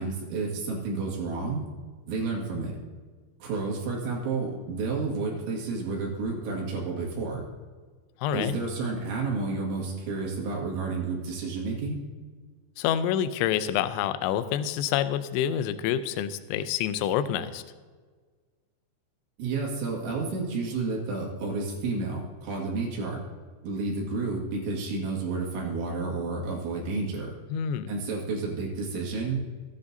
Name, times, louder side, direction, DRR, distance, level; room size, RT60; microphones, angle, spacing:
voice 1, 0.0-1.6 2.1-2.8 3.4-7.4 8.3-12.0 19.4-23.2 23.6-27.3 27.9-29.4, right 3 dB, 85° right, -3 dB, 4.4 m, -31 dB
voice 2, 8.2-8.6 12.8-17.6 27.5-27.9, left 10 dB, 85° left, 12 dB, 2.8 m, -27 dB
16.5 x 9.6 x 2.7 m, 1.5 s
omnidirectional pair, 5.2 m